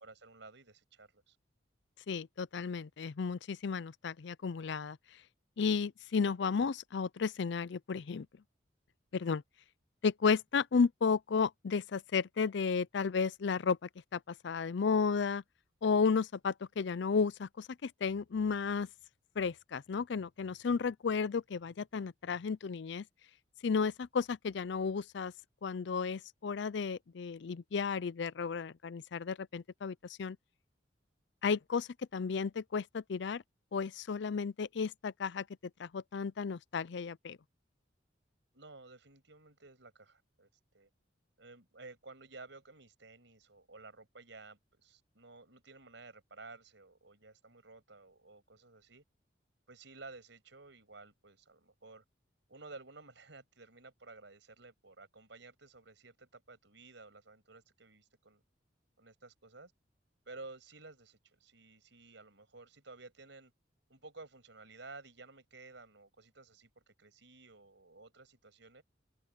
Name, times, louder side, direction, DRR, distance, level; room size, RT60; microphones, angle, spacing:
voice 1, 0.0-1.4 38.5-40.5 40.7-40.9 41.4-49.0 49.7-52.0 52.5-58.4 59.0-59.7 60.3-63.5 63.9-68.8, right 3 dB, 70° right, 6.6 m, -54 dB
voice 2, 2.1-5.0 5.6-8.3 9.1-9.4 10.0-15.4 15.8-18.9 19.4-23.0 23.6-25.3 25.6-30.4 31.4-33.4 33.7-35.5 35.8-37.4, left 5 dB, 65° left, 0.5 m, -33 dB
head